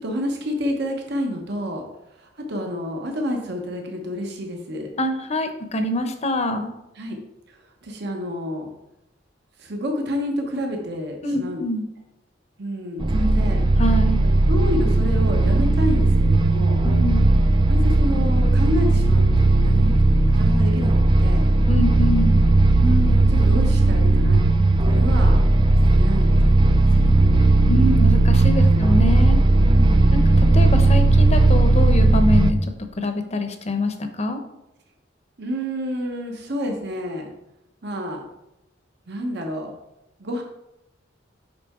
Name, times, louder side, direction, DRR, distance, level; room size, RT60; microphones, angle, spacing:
voice 1, 0.0-1.8 2.2-4.9 6.9-7.2 7.5-8.7 9.6-11.6 12.6-13.6 14.2-16.8 17.7-20.9 21.2-21.5 22.8-24.4 24.8-25.5 25.9-27.5 28.5-28.8 29.7-30.1 35.4-37.3 37.8-38.2 39.1-39.7 40.2-40.4, left 1 dB, 60° right, 2 dB, 1.1 m, -29 dB
voice 2, 5.0-6.7 11.2-11.8 13.1-13.4 13.8-14.2 16.8-17.3 21.7-22.4 27.7-29.4 30.1-32.6 33.0-34.4, left 1 dB, 35° left, 7 dB, 0.8 m, -25 dB
sound 1, 13.0-32.5, right 2 dB, 25° right, 0.4 m, -16 dB
7.7 x 5.4 x 3.7 m, 0.90 s
head